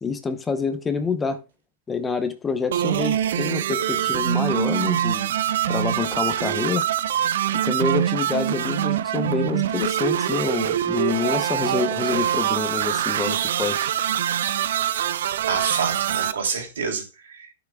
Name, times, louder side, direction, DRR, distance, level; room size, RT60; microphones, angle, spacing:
voice 1, 0.0-1.4 1.9-5.3 5.7-6.8 7.6-13.9, left 5 dB, 10° left, 0.7 m, -27 dB
sound 1, 2.7-16.3, right 10 dB, 75° right, 0.5 m, -24 dB
voice 2, 15.4-17.5, right 5 dB, 90° right, 2.8 m, -28 dB
11.5 x 6.0 x 2.3 m
hypercardioid pair, 150°, 0 cm